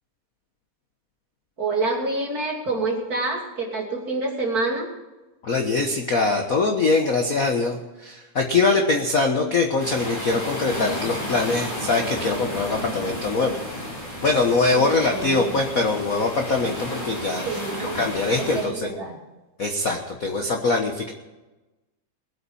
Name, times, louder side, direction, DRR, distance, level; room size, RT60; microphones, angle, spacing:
voice 1, 1.6-4.9 14.7-15.6 17.4-18.0 18.4-19.2, right 3 dB, 30° right, -1 dB, 3.1 m, -27 dB
voice 2, 5.4-13.5 14.2-18.9 19.6-21.1, left 3 dB, 65° left, 2 dB, 0.8 m, -23 dB
sound 1, 9.8-18.7, equal, 15° left, 3.1 m, -32 dB
20.5 x 8.5 x 5.5 m, 1.1 s
omnidirectional pair, 3.4 m